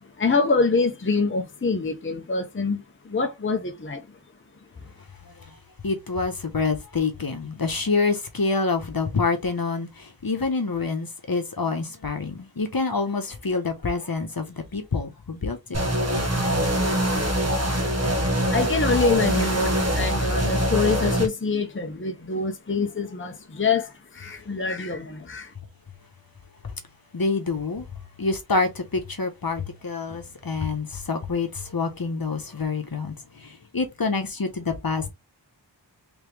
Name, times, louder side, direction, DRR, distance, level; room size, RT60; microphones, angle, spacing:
voice 1, 0.0-4.2 17.7-18.0 18.3-25.5, left 4 dB, 30° left, 0.7 m, -25 dB
voice 2, 5.2-5.6 5.8-15.8 26.6-26.7 27.1-27.9 28.2-35.1, left 4 dB, 50° left, 1.0 m, -27 dB
sound 1, 15.7-21.3, equal, 35° right, 1.2 m, -23 dB
3.5 x 3.3 x 3.4 m
wide cardioid pair, 45°, 44 cm